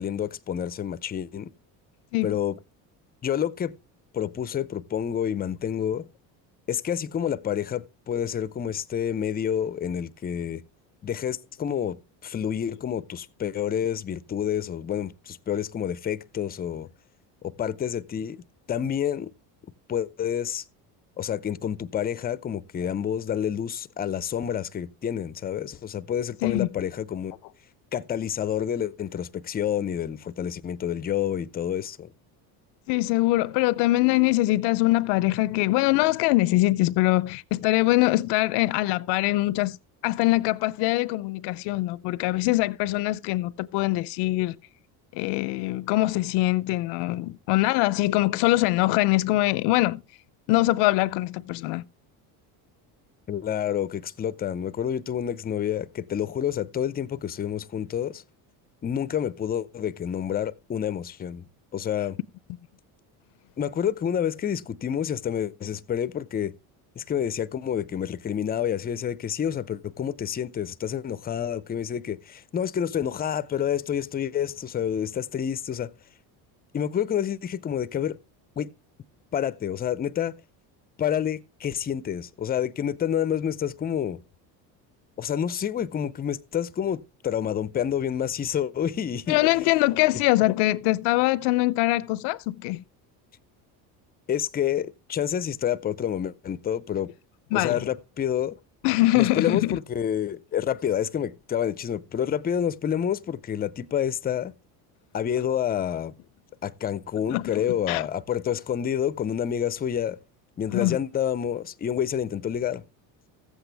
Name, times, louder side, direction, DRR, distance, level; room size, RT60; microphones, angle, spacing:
voice 1, 0.0-1.5 2.2-2.6 3.2-3.7 4.1-6.1 6.7-10.6 11.0-12.0 12.2-16.9 17.4-18.4 18.7-19.3 19.9-20.6 21.2-27.3 27.9-32.1 53.3-58.2 58.8-61.5 61.7-62.2 63.6-66.5 67.0-75.9 76.7-78.2 78.6-78.7 79.3-80.3 81.0-84.2 85.2-89.4 94.3-97.1 97.5-98.6 99.1-104.5 105.1-106.1 106.6-110.2 110.6-112.8, left 9 dB, 25° left, 0.5 m, -28 dB
voice 2, 32.9-39.8 40.0-44.6 45.1-50.0 50.5-51.8 89.3-92.8 97.5-97.8 98.8-99.8 107.3-108.1 110.7-111.0, left 19 dB, 75° left, 0.5 m, -23 dB
14.5 x 8.0 x 3.3 m
cardioid pair, 115°, 42 cm